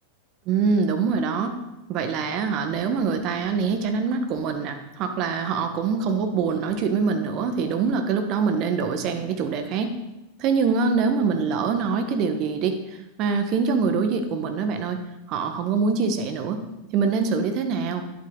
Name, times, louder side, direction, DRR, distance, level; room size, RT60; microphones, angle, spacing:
voice 1, 0.5-1.6 1.9-9.9 10.4-15.0 15.3-16.6 16.9-18.0, right 5 dB, 45° right, 7 dB, 1.3 m, -24 dB
10.5 x 8.3 x 3.9 m, 0.94 s
figure-of-eight pair, 90°, 0 cm